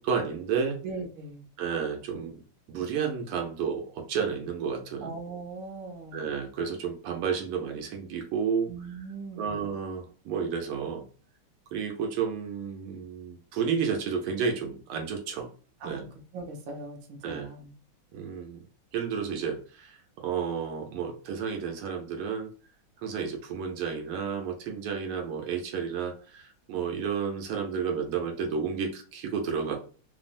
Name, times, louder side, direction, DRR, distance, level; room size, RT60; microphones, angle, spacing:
voice 1, 0.0-0.8 1.6-2.4 2.7-5.1 6.1-8.7 9.4-11.1 11.7-15.5 15.8-16.1 17.2-17.5 18.1-18.6 18.9-20.0 20.2-22.5 23.0-29.8, right 6 dB, 85° right, 2 dB, 1.6 m, -31 dB
voice 2, 0.8-1.4 5.0-6.3 8.7-9.6 15.8-17.7, right 3 dB, 65° right, 1 dB, 1.4 m, -40 dB
3.7 x 2.0 x 2.5 m, 0.38 s
omnidirectional pair, 2.4 m